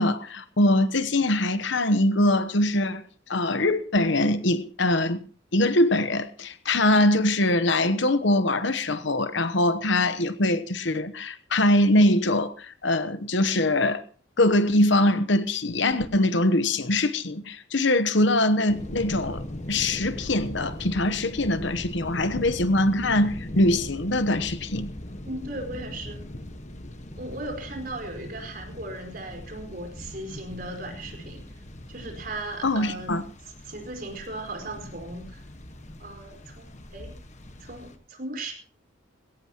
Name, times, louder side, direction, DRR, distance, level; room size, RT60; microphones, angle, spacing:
voice 1, 0.0-3.0 3.3-5.2 5.5-14.0 14.4-19.4 19.7-24.9 32.6-33.2, left 1 dB, 65° left, 1.0 m, -23 dB
sound 1, 18.7-38.0, left 1 dB, 35° left, 1.4 m, -40 dB
voice 2, 25.2-26.2 27.2-31.4 31.9-33.1 33.6-35.4 36.0-37.1 37.6-38.5, right 2 dB, 45° right, 4.7 m, -37 dB
20.5 x 17.0 x 3.0 m
head